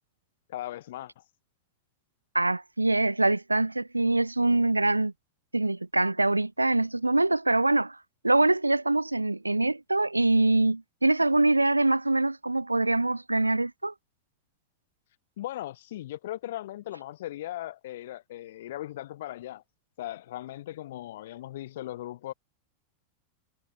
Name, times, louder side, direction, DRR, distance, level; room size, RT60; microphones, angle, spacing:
voice 1, 0.5-1.3 15.4-19.6 20.0-22.3, left 14 dB, 55° left, 1.1 m, -38 dB
voice 2, 2.3-5.1 5.5-8.0 8.2-13.9, right 2 dB, 85° right, 0.3 m, -24 dB
figure-of-eight pair, 90°, 0 cm